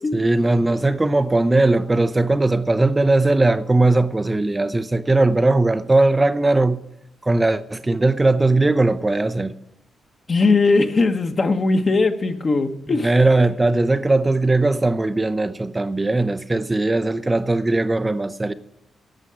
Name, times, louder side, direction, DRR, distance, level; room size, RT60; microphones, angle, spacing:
voice 1, 0.1-6.8 7.2-9.6 12.9-18.5, right 2 dB, 20° right, 0.6 m, -19 dB
voice 2, 10.3-13.1, left 3 dB, 40° left, 1.2 m, -19 dB
11.5 x 7.4 x 9.8 m
cardioid pair, 80°, 0 cm